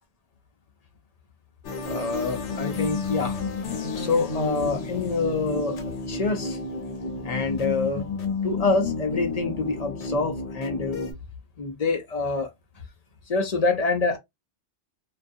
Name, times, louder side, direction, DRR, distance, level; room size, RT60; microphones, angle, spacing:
sound 1, 1.6-11.1, left 4 dB, 80° left, 1.0 m, -31 dB
voice 1, 1.8-3.4 3.9-6.6 7.2-8.1 8.4-11.0 11.6-12.5 13.3-14.2, left 3 dB, 45° left, 0.5 m, -26 dB
2.3 x 2.3 x 2.6 m
omnidirectional pair, 1.2 m